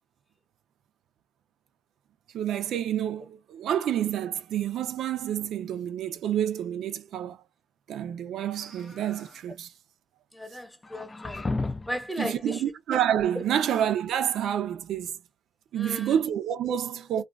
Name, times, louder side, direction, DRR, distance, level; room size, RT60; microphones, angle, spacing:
voice 1, 2.3-7.4 7.9-9.7 11.2-11.3 12.2-15.2 15.7-17.2, right 10 dB, 75° right, 0.5 m, -28 dB
sound 1, 8.5-9.4 10.8-12.1, left 3 dB, 25° left, 0.4 m, -34 dB
voice 2, 10.3-11.4 11.9-12.6 13.3-13.4 15.7-16.2, equal, 5° left, 1.0 m, -35 dB
2.4 x 2.3 x 3.3 m
cardioid pair, 90°, 0 cm